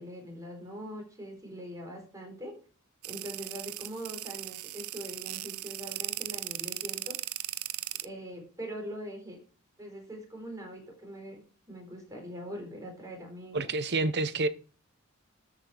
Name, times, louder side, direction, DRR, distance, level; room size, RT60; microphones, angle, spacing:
voice 1, 0.0-2.6 3.0-7.1 8.0-9.4 9.8-11.4 11.7-13.7, equal, 15° right, 4.4 m, -42 dB
sound 1, 3.0-8.0, right 16 dB, 90° right, 0.5 m, -38 dB
voice 2, 13.5-14.5, right 3 dB, 55° right, 0.8 m, -28 dB
13.0 x 5.9 x 5.0 m
head